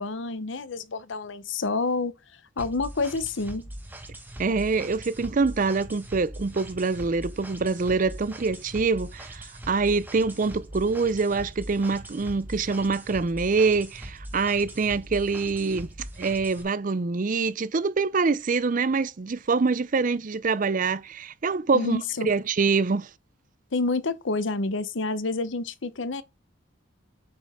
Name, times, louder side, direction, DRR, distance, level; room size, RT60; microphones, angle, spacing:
voice 1, 0.0-2.1 2.6-3.7 21.7-22.3 23.7-26.2, left 3 dB, 65° left, 0.8 m, -28 dB
sound 1, 2.6-16.6, right 1 dB, 10° right, 1.3 m, -41 dB
voice 2, 4.4-23.1, right 4 dB, 40° right, 0.4 m, -25 dB
7.8 x 5.2 x 3.6 m
head